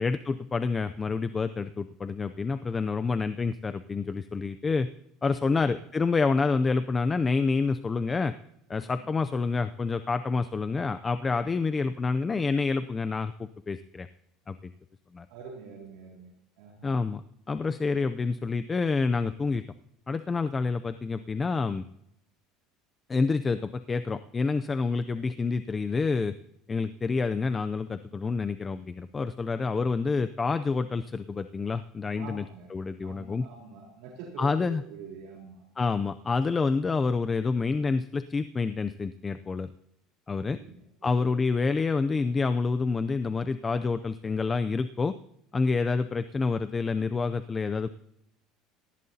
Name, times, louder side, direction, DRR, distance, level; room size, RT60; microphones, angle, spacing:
voice 1, 0.0-4.9 5.2-8.3 8.7-14.1 14.5-14.6 15.1-15.3 16.8-19.6 20.1-21.8 23.1-26.3 26.7-32.4 32.7-33.5 34.4-34.8 35.8-39.7 40.3-40.6 41.0-45.1 45.5-47.9, left 4 dB, 20° left, 11 dB, 0.4 m, -28 dB
voice 2, 15.3-17.0 32.1-32.7 33.0-35.6 40.5-41.2, right 5 dB, 80° right, -2 dB, 3.8 m, -46 dB
18.5 x 15.0 x 2.8 m, 0.77 s
cardioid pair, 140°, 0 cm